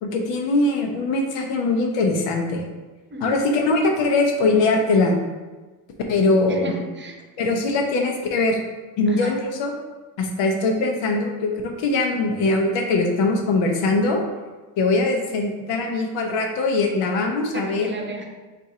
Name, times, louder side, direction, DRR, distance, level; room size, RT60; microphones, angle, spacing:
voice 1, 0.0-2.6 3.2-5.1 6.1-6.7 7.4-8.6 9.0-9.7 10.2-14.2 14.8-17.9, left 3 dB, 85° left, 2 dB, 0.8 m, -21 dB
voice 2, 3.1-3.4 6.5-7.2 9.1-9.3 17.5-18.2, right 2 dB, 25° right, 2 dB, 0.8 m, -34 dB
4.0 x 2.6 x 4.8 m, 1.3 s
supercardioid pair, 70°, 43 cm